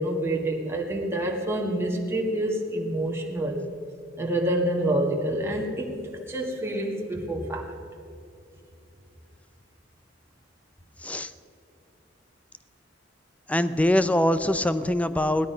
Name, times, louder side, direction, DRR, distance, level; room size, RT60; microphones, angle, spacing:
voice 1, 0.0-3.6 4.2-7.7, right 1 dB, 15° right, -1 dB, 1.7 m, -27 dB
voice 2, 13.5-15.5, left 1 dB, 5° left, 12 dB, 0.5 m, -23 dB
17.0 x 12.5 x 5.7 m, 2.5 s
head